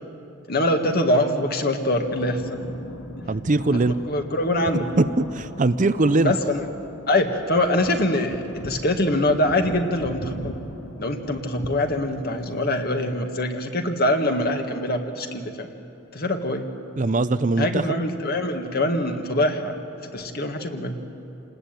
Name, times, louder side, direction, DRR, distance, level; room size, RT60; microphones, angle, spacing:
voice 1, 0.5-2.6 3.9-4.9 6.2-6.7 7.1-10.6 11.0-15.7 16.1-16.7 17.6-19.8 20.1-21.0, left 1 dB, 45° left, 5 dB, 1.9 m, -24 dB
sound 1, 1.9-12.8, equal, 85° left, 2.1 m, -39 dB
voice 2, 3.3-4.0 5.0-6.3 17.0-17.8, right 2 dB, 35° right, 12 dB, 0.6 m, -21 dB
28.5 x 20.0 x 9.2 m, 2.9 s
head